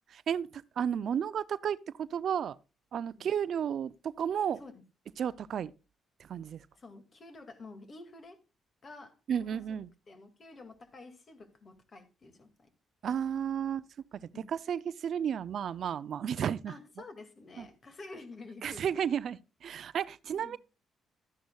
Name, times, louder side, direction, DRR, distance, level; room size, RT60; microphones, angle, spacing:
voice 1, 0.0-2.6 2.9-4.6 5.2-5.7 6.2-6.6 9.3-9.9 13.0-13.8 14.4-16.7 17.6-17.7 18.6-20.6, right 8 dB, 60° right, 0.4 m, -33 dB
voice 2, 6.7-8.4 8.8-9.8 10.1-12.7 14.3-14.5 16.7-19.1 20.3-20.6, left 3 dB, 40° left, 2.1 m, -50 dB
12.5 x 10.0 x 2.3 m
cardioid pair, 90°, 0 cm